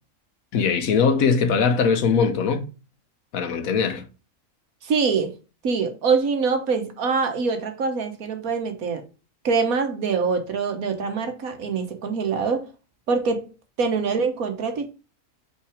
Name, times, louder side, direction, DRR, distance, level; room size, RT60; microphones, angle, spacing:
voice 1, 0.5-2.7 3.3-4.1, left 5 dB, 80° left, 1.4 m, -21 dB
voice 2, 4.8-5.3 5.6-9.0 9.4-12.7 13.1-13.5 13.8-14.9, right 5 dB, 85° right, 1.6 m, -24 dB
5.8 x 4.2 x 4.9 m
omnidirectional pair, 1.4 m